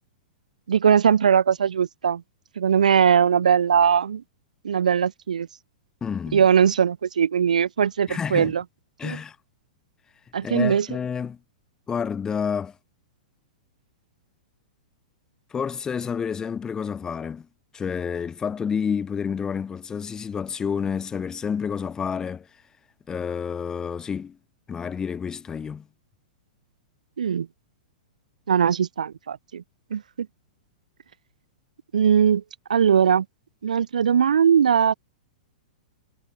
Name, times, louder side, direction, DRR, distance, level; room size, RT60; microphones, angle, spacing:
voice 1, 0.7-2.2 2.6-4.2 4.6-5.5 6.3-8.6 9.0-9.2 10.3-10.9 27.2-27.5 28.5-29.6 29.9-30.3 31.9-32.4 32.7-33.3 33.6-34.9, right 7 dB, 70° right, 0.3 m, -20 dB
voice 2, 6.0-6.4 8.1-8.5 9.0-9.4 10.4-11.4 11.9-12.7 15.5-17.5 17.7-22.5 23.1-24.4 24.7-25.9, left 6 dB, 15° left, 0.7 m, -29 dB
figure-of-eight pair, 105°, 4 cm